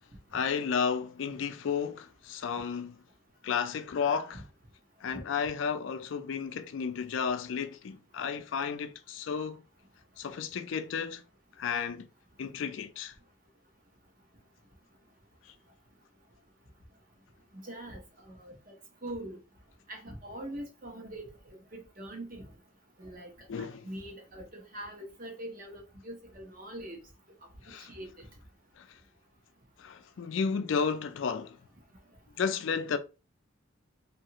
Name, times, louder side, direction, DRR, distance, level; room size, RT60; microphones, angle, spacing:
voice 1, 0.3-3.0 3.4-4.4 5.0-9.6 10.2-11.2 11.6-12.1 12.4-13.1 15.4-15.5 23.5-23.9 27.7-27.9 28.8-29.0 29.8-31.6 32.4-33.0, left 6 dB, 70° left, 0.4 m, -32 dB
voice 2, 17.5-18.6 19.0-19.4 19.9-22.5 23.0-27.0 27.8-28.3, right 1 dB, 40° right, 0.8 m, -43 dB
2.8 x 2.4 x 2.8 m
head